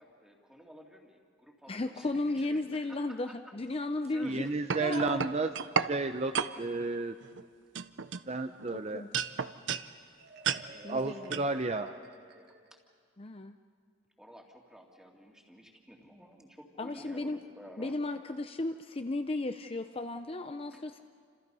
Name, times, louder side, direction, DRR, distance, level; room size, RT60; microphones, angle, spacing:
voice 1, 0.0-3.5 4.0-4.4 5.2-5.4 6.5-6.9 10.3-10.4 12.7-12.8 14.2-18.0 20.7-20.8, equal, 5° right, 0 dB, 2.3 m, -53 dB
voice 2, 1.7-4.5 4.8-5.3 8.7-9.1 10.8-11.4 13.2-13.6 16.8-17.4 17.8-21.0, left 2 dB, 30° left, 7 dB, 0.6 m, -35 dB
voice 3, 4.2-5.5 5.9-6.3 6.6-7.1 8.3-9.0 10.7-11.9, right 3 dB, 35° right, 8 dB, 0.6 m, -32 dB
sound 1, 4.3-5.9 6.3-6.5 7.2-7.4 7.8-8.7 9.1-9.9 10.4-10.6 11.3-11.5, right 6 dB, 70° right, 0.7 m, -32 dB
Marimba xylophone, 10.2-13.0, right 3 dB, 55° right, 1.7 m, -52 dB
29.0 x 27.0 x 5.5 m, 2.1 s
head